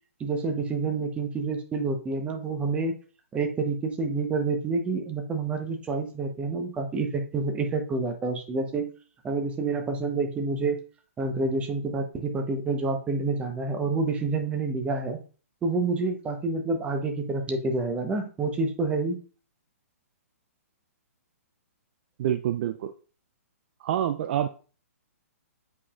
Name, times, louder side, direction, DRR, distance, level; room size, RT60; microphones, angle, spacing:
voice 1, 0.2-2.9 3.3-8.9 9.2-10.8 11.2-15.2 15.6-19.2, right 3 dB, 15° right, 5 dB, 1.0 m, -28 dB
voice 2, 22.2-22.9 23.8-24.5, right 11 dB, 45° right, 10 dB, 0.4 m, -27 dB
8.2 x 5.0 x 2.5 m, 0.38 s
figure-of-eight pair, 125°, 8 cm